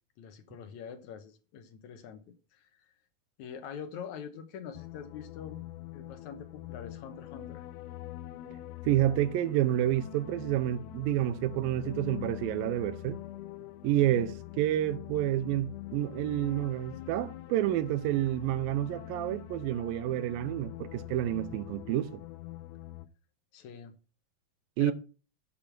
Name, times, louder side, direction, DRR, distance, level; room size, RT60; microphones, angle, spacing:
voice 1, 0.2-2.2 2.5-2.9 3.4-5.6 5.9-7.6 23.5-24.0 24.8-24.9, left 7 dB, 70° left, 1.9 m, -44 dB
sound 1, 4.7-23.1, left 14 dB, 90° left, 1.8 m, -44 dB
voice 2, 8.8-13.2 13.8-22.2 24.8-24.9, right 13 dB, 80° right, 2.4 m, -29 dB
8.5 x 5.4 x 5.9 m
omnidirectional pair, 4.2 m